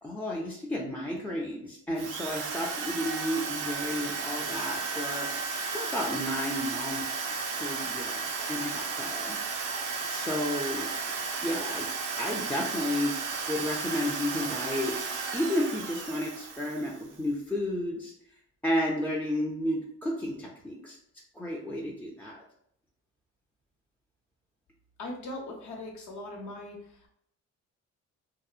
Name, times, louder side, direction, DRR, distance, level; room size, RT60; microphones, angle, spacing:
voice 1, 0.0-5.3 5.7-9.4 10.0-10.9 11.4-13.2 13.5-14.9 15.3-18.1 18.6-21.0 21.3-22.4, left 1 dB, 5° left, -2 dB, 0.3 m, -32 dB
Drill, 1.9-17.1, right 5 dB, 85° right, 0.5 m, -34 dB
voice 2, 25.0-27.1, left 1 dB, 70° left, 1 dB, 0.8 m, -40 dB
2.7 x 2.1 x 2.3 m, 0.70 s
cardioid pair, 90°, 30 cm